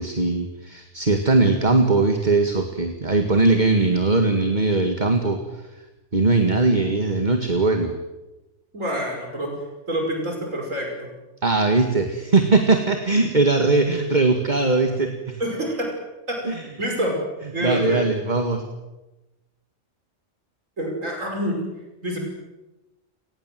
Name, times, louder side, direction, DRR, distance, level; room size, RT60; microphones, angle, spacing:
voice 1, 0.0-5.4 6.1-7.9 11.4-15.4 16.4-16.6 17.6-18.6, right 3 dB, 35° right, 5 dB, 2.1 m, -20 dB
voice 2, 8.7-9.5 9.9-11.1 15.4-15.9 16.3-16.4 16.8-17.2 17.5-18.0 20.8-21.6 22.0-22.2, right 1 dB, 85° right, 1 dB, 5.9 m, -26 dB
29.5 x 19.5 x 7.7 m, 1.1 s
omnidirectional pair, 1.3 m